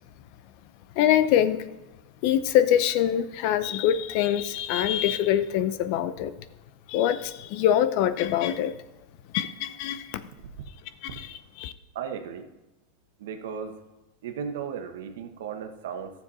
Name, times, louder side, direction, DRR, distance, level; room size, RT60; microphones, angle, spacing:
voice 1, 0.9-1.7 2.2-6.3 6.9-8.8 9.3-10.2 11.0-11.7, left 10 dB, 55° left, 14 dB, 0.6 m, -24 dB
voice 2, 11.9-12.5 13.2-13.8 14.2-16.1, right 7 dB, 80° right, 6 dB, 1.2 m, -35 dB
12.5 x 7.1 x 4.2 m, 1.1 s
supercardioid pair, 145°, 0 cm